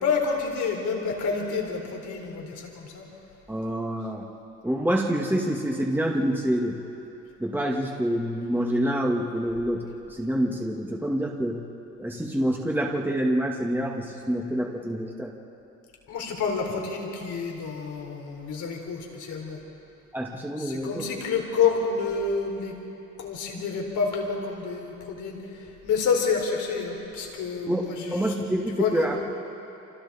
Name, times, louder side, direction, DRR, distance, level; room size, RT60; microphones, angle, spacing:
voice 1, 0.0-3.1 16.1-19.6 20.6-22.7 23.2-28.3 28.7-29.2, left 5 dB, 75° left, 0 dB, 4.4 m, -28 dB
voice 2, 3.5-4.3 4.6-6.8 7.4-11.6 12.0-15.3 20.1-21.1 27.7-27.8 28.1-29.2, equal, 5° right, -1 dB, 2.1 m, -27 dB
29.5 x 26.5 x 4.4 m, 2.9 s
cardioid pair, 90°, 30 cm